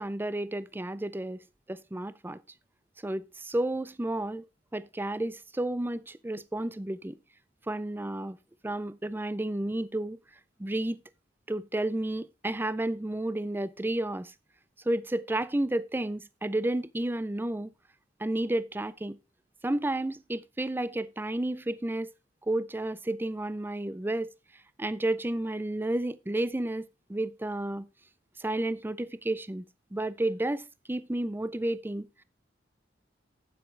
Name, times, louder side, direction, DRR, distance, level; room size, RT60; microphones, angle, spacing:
voice 1, 0.0-1.4 1.7-2.4 3.0-4.4 4.7-7.2 7.7-8.4 8.6-10.2 10.6-11.0 11.5-14.3 14.9-17.7 18.2-19.2 19.6-22.1 22.5-24.3 24.8-27.9 28.4-29.6 29.9-32.2, right 1 dB, 10° right, 0.5 m, -31 dB
8.5 x 7.8 x 4.5 m
head